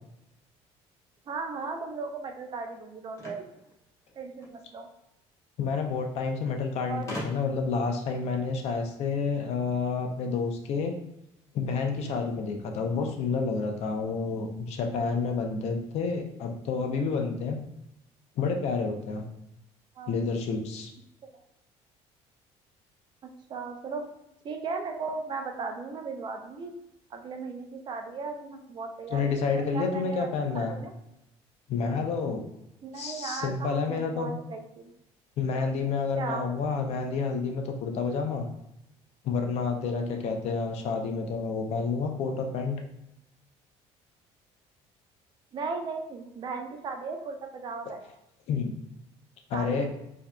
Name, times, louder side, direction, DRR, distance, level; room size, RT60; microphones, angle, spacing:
voice 1, 1.3-3.5 4.1-4.9 6.9-7.0 20.0-20.2 23.2-24.1 24.4-26.7 27.1-29.2 29.5-30.3 30.5-30.9 32.8-34.9 36.1-36.4 45.5-48.0 49.5-49.9, right 4 dB, 40° right, 4 dB, 0.5 m, -36 dB
sound 1, 3.1-4.6 5.7-5.8 6.0-6.1 7.1-7.7, left 1 dB, 25° left, 1.1 m, -40 dB
voice 2, 5.6-10.9 11.5-17.6 18.4-19.2 20.1-20.9 29.1-30.8 31.7-32.5 32.9-34.3 35.4-38.5 39.2-42.8 48.5-48.7 49.5-49.9, left 4 dB, 60° left, 4 dB, 0.6 m, -29 dB
4.6 x 2.7 x 2.3 m, 0.85 s
cardioid pair, 125°, 12 cm